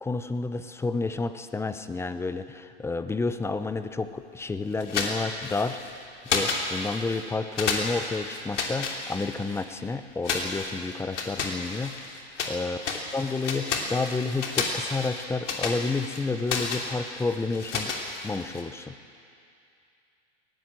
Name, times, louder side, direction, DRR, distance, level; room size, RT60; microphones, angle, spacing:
voice 1, 0.0-5.8 6.2-12.0 12.5-12.8 13.1-17.9 18.2-19.0, left 3 dB, 5° left, 11 dB, 0.6 m, -30 dB
sound 1, 4.8-5.9 6.2-7.2 7.6-9.6 10.2-12.6 12.8-18.6, left 4 dB, 90° left, 3.0 m, -31 dB
20.0 x 17.5 x 7.5 m, 2.5 s
hypercardioid pair, 120°, 35 cm